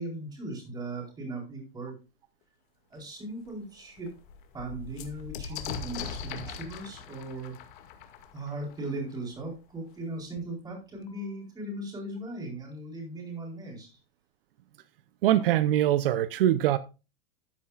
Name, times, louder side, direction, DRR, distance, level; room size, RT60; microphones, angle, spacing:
voice 1, 0.0-1.9 2.9-4.2 4.5-7.6 8.3-14.0, right 2 dB, 15° right, 4.2 m, -38 dB
sound 1, 2.9-3.0 3.5-3.6 3.8-9.4 10.4-10.5 10.7-11.3, left 6 dB, 55° left, 2.1 m, -41 dB
voice 2, 15.2-16.8, right 12 dB, 70° right, 0.8 m, -23 dB
13.5 x 9.7 x 2.4 m
supercardioid pair, 170°, 29 cm